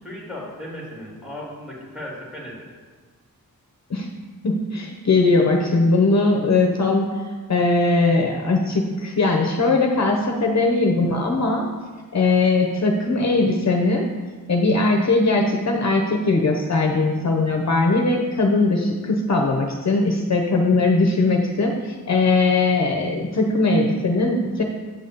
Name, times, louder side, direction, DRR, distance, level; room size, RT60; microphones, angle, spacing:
voice 1, 0.0-2.7, left 1 dB, 5° right, -4 dB, 2.2 m, -36 dB
voice 2, 4.4-7.1 7.5-11.6 12.1-14.1 14.5-24.6, left 3 dB, 50° left, 1 dB, 0.8 m, -20 dB
9.3 x 4.0 x 6.8 m, 1.4 s
wide cardioid pair, 155°, 35 cm